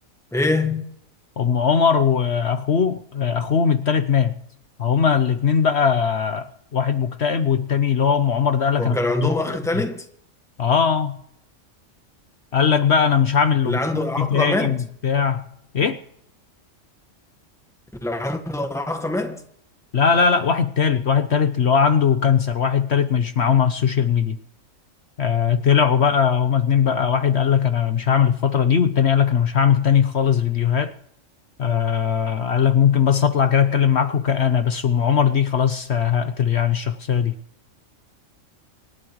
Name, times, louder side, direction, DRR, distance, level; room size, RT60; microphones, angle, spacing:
voice 1, 0.3-0.8 8.8-10.0 13.6-14.8 18.0-19.4, left 2 dB, ahead, 1.4 m, -24 dB
voice 2, 1.4-4.4 4.8-9.8 10.6-11.2 12.5-13.8 14.2-14.8 15.0-15.5 15.7-16.0 19.9-24.4 25.2-30.9 31.6-37.3, left 7 dB, 60° left, 1.1 m, -19 dB
27.0 x 11.5 x 3.1 m
omnidirectional pair, 1.4 m